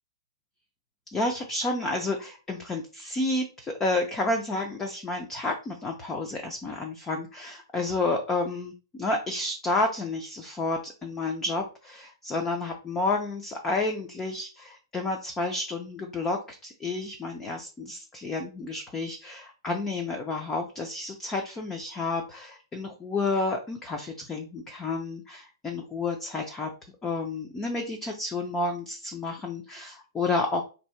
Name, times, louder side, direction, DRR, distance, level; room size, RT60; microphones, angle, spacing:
voice 1, 1.1-26.7 27.0-30.6, left 2 dB, 10° left, 3 dB, 0.3 m, -30 dB
3.2 x 2.7 x 4.3 m, 0.33 s
hypercardioid pair, 180°, 3 cm